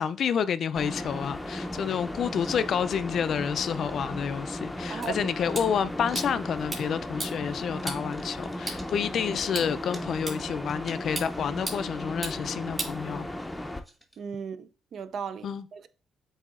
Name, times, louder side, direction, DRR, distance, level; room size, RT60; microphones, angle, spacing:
voice 1, 0.0-13.3 15.4-15.7, left 7 dB, 60° left, 0.3 m, -29 dB
sound 1, 0.7-13.8, left 1 dB, 10° left, 0.5 m, -36 dB
sound 2, 1.4-1.7 2.2-2.8 3.0-3.4 3.7-4.1 4.4-6.4 6.7-12.7 13.3-14.2, right 1 dB, 10° right, 1.0 m, -50 dB
voice 2, 4.9-5.3 14.2-15.9, right 6 dB, 60° right, 0.4 m, -37 dB
sound 3, 5.0-13.6, right 2 dB, 25° right, 2.2 m, -40 dB
8.1 x 2.7 x 2.4 m
cardioid pair, 90°, 0 cm